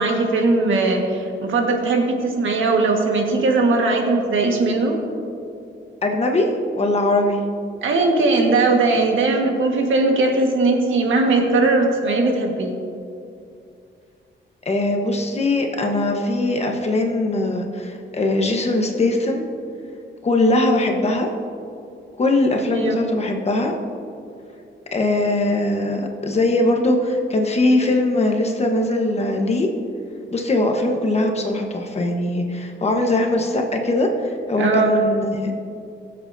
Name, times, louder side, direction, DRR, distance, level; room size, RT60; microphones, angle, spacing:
voice 1, 0.0-5.0 7.8-12.8 22.7-23.0 34.6-34.9, right 3 dB, 75° right, 2 dB, 1.6 m, -19 dB
voice 2, 6.0-6.5 6.7-7.4 14.6-19.5 20.2-21.3 22.2-23.8 24.9-29.7 30.3-35.5, left 2 dB, 30° left, 2 dB, 1.2 m, -21 dB
22.0 x 7.7 x 2.7 m, 2.5 s
wide cardioid pair, 135°, 20 cm